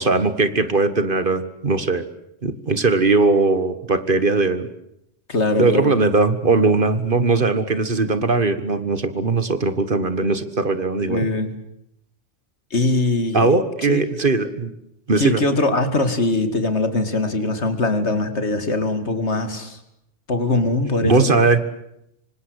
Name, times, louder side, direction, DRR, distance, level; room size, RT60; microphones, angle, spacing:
voice 1, 0.0-2.1 2.4-4.7 5.6-11.3 13.3-14.7 15.1-15.4 21.0-21.6, right 3 dB, 50° right, 12 dB, 1.7 m, -19 dB
voice 2, 5.3-6.0 11.1-11.5 12.7-13.5 13.8-14.0 15.2-19.8 20.3-21.3, left 2 dB, 70° left, 10 dB, 2.8 m, -21 dB
26.0 x 25.5 x 8.1 m, 0.79 s
omnidirectional pair, 1.2 m